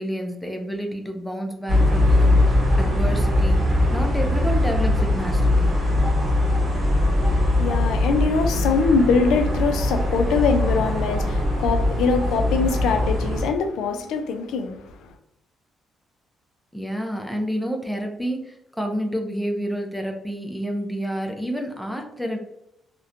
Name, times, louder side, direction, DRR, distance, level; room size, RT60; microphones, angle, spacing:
voice 1, 0.0-3.6 3.9-5.8 16.7-22.4, equal, 5° left, 0.4 m, -29 dB
sound 1, 1.7-13.5, left 1 dB, 45° right, 0.9 m, -21 dB
voice 2, 7.1-15.1, left 4 dB, 85° left, 0.3 m, -23 dB
2.7 x 2.1 x 2.4 m
cardioid pair, 90°, 0 cm